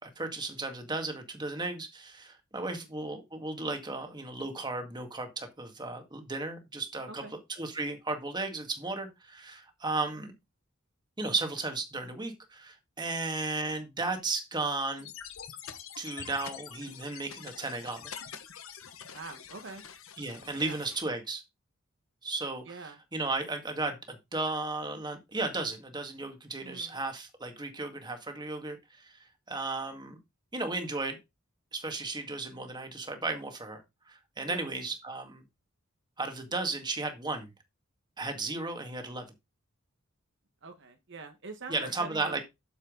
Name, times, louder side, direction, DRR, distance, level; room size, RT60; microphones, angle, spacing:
voice 1, 0.0-10.3 11.2-15.1 16.0-18.1 20.2-21.4 22.2-30.2 30.5-31.2 31.7-33.8 34.1-35.4 36.2-37.5 38.2-39.3 41.7-42.4, right 3 dB, 20° right, 5 dB, 2.0 m, -35 dB
sound 1, 15.0-21.0, left 8 dB, 80° left, 1.4 m, -46 dB
voice 2, 19.1-19.8 20.6-20.8 22.7-23.0 26.6-27.0 34.4-34.7 40.6-42.4, right 3 dB, 60° right, 6 dB, 1.5 m, -44 dB
8.5 x 7.4 x 3.9 m, 0.22 s
head